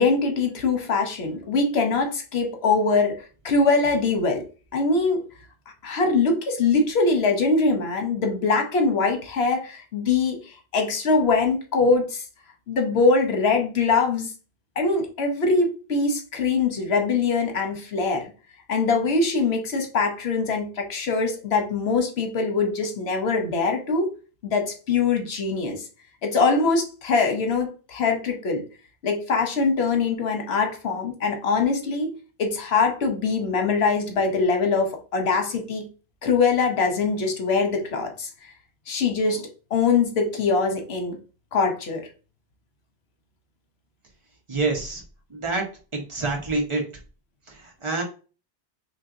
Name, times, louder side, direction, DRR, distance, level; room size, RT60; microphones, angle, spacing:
voice 1, 0.0-4.4 4.7-5.3 5.8-12.2 12.7-14.3 14.8-18.3 18.7-24.1 24.4-25.9 26.2-28.6 29.0-35.9 36.2-38.3 38.9-41.2 41.5-42.1, left 4 dB, 80° left, 4 dB, 1.1 m, -23 dB
voice 2, 44.5-45.0 45.3-45.6 45.9-46.8 47.5-48.0, right 3 dB, 30° right, 1 dB, 1.0 m, -27 dB
4.4 x 3.1 x 2.5 m, 0.35 s
omnidirectional pair, 1.0 m